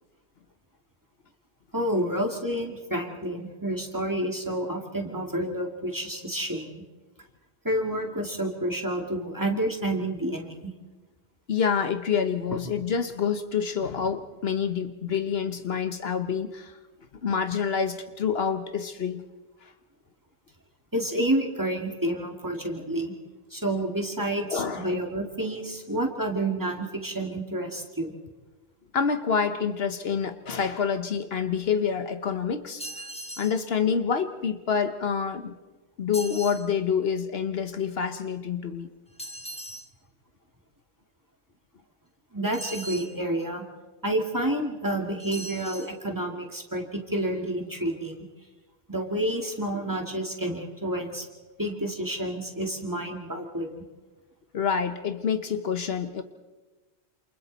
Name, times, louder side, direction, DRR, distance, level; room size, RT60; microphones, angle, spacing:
voice 1, 1.7-6.8 7.6-10.7 20.9-23.1 23.5-28.1 42.3-43.6 44.0-48.2 48.9-51.3 51.6-53.8, right 1 dB, 15° right, 2 dB, 2.2 m, -29 dB
voice 2, 11.5-16.8 17.2-19.2 19.6-19.7 24.5-24.9 28.9-32.8 33.4-35.5 36.0-38.9 54.5-56.2, left 6 dB, 65° left, 8 dB, 1.2 m, -27 dB
sound 1, 32.8-33.6 36.1-36.7 39.2-39.9 42.5-43.2 45.2-45.9, right 1 dB, 5° left, 1.2 m, -39 dB
28.0 x 28.0 x 4.1 m, 1.2 s
omnidirectional pair, 1.1 m